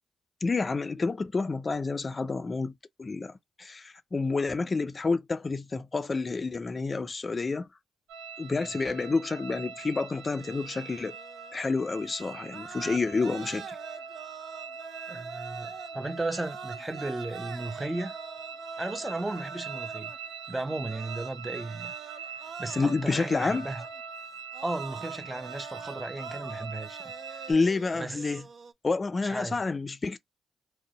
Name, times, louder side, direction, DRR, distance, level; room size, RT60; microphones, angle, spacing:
voice 1, 0.4-2.7 3.0-7.7 8.4-11.2 11.5-13.8 22.8-23.7 27.5-28.4 28.8-30.2, left 4 dB, 40° left, 0.4 m, -29 dB
sound 1, 8.1-27.5, right 6 dB, 90° right, 0.7 m, -42 dB
sound 2, 10.4-11.8 12.2-28.7, right 6 dB, 65° right, 0.4 m, -45 dB
voice 2, 15.1-18.2 18.8-20.1 20.5-21.9 22.6-23.8 24.6-27.0 28.0-28.2 29.2-29.6, right 2 dB, 20° right, 0.5 m, -35 dB
2.6 x 2.1 x 3.8 m
supercardioid pair, 45°, 0 cm